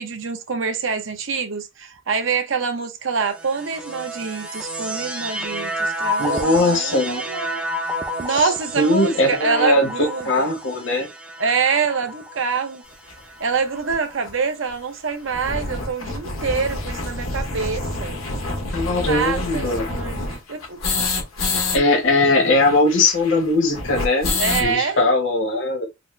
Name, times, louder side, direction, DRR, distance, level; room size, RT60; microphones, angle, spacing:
voice 1, 0.0-7.6 8.2-10.5 11.4-12.8 13.4-18.2 18.9-20.8 24.4-25.0, right 5 dB, 65° right, 0.7 m, -25 dB
sound 1, 3.2-14.6 15.4-16.2, equal, 5° right, 0.4 m, -31 dB
voice 2, 6.2-7.2 8.3-8.5 8.8-11.1 18.7-19.9 21.7-24.3 24.6-25.8, left 2 dB, 65° left, 1.1 m, -20 dB
sound 2, 13.1-13.2 13.9-14.0 14.2-14.3 14.6-14.7 15.1-21.8 22.0-22.1 22.3-24.7, left 2 dB, 85° left, 1.3 m, -27 dB
4.1 x 2.1 x 3.1 m
head